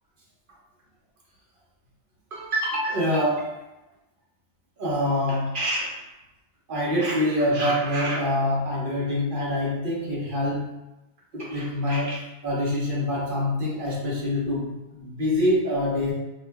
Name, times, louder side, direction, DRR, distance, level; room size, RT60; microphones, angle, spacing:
voice 1, 2.3-3.6 4.8-6.0 6.7-10.8 11.3-16.1, left 1 dB, 50° right, -5 dB, 0.9 m, -25 dB
2.4 x 2.2 x 3.2 m, 0.98 s
omnidirectional pair, 1.1 m